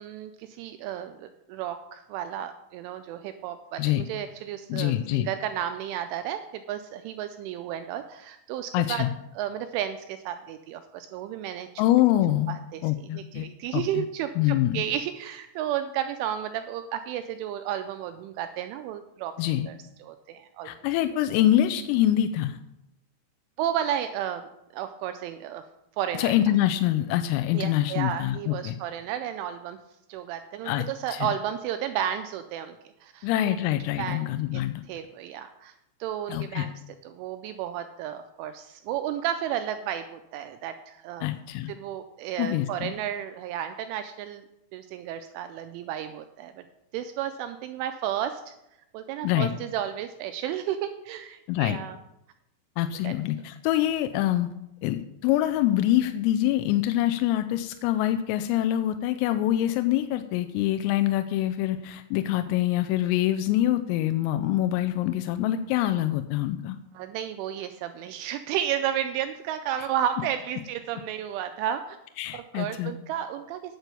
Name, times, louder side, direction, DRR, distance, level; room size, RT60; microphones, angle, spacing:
voice 1, 0.0-9.0 9.4-11.7 12.5-19.3 19.7-19.8 20.0-20.7 23.6-25.6 26.0-26.3 27.5-29.8 30.1-33.6 34.0-34.6 34.9-35.7 36.0-41.3 41.7-44.4 44.7-46.6 46.9-48.5 48.9-52.0 53.0-53.1 66.9-72.0 72.3-73.8, right 10 dB, 85° right, 8 dB, 2.8 m, -33 dB
voice 2, 4.7-5.3 8.7-9.1 11.8-12.5 12.8-13.5 13.7-14.0 14.4-14.8 19.4-19.7 20.7-22.6 26.1-28.8 30.6-31.3 33.2-34.8 36.3-36.7 41.2-41.7 42.4-43.0 49.2-49.5 51.5-51.8 52.8-54.5 54.8-66.8 72.2-72.9, left 13 dB, 85° left, 9 dB, 3.2 m, -25 dB
8.9 x 8.2 x 6.7 m, 0.86 s
omnidirectional pair, 6.0 m